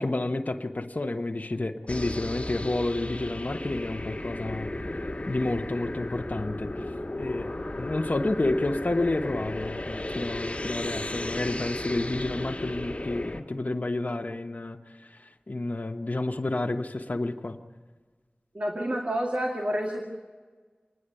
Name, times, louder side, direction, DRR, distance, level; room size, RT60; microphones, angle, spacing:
voice 1, 0.0-6.9 7.1-14.8 15.1-15.2 15.5-17.6, left 2 dB, 55° left, 3 dB, 1.1 m, -30 dB
sound 1, 1.9-13.4, left 1 dB, 40° left, 1.9 m, -34 dB
voice 2, 18.5-20.0, equal, 45° right, 1 dB, 2.1 m, -29 dB
27.5 x 10.0 x 9.9 m, 1.5 s
wide cardioid pair, 50°, 3 cm